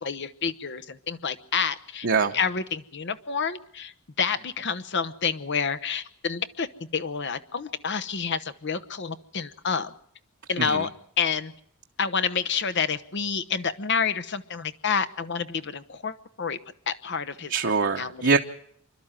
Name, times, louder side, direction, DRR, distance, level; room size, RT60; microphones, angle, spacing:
voice 1, 0.0-2.1 2.3-6.7 6.9-9.9 10.5-10.9 11.2-11.5 12.0-16.6 16.9-17.5 18.0-18.3, left 6 dB, 55° left, 12 dB, 0.8 m, -28 dB
voice 2, 2.0-2.4 10.6-10.9 17.5-18.4, right 4 dB, 55° right, 3 dB, 0.9 m, -23 dB
26.5 x 12.0 x 8.9 m, 0.66 s
head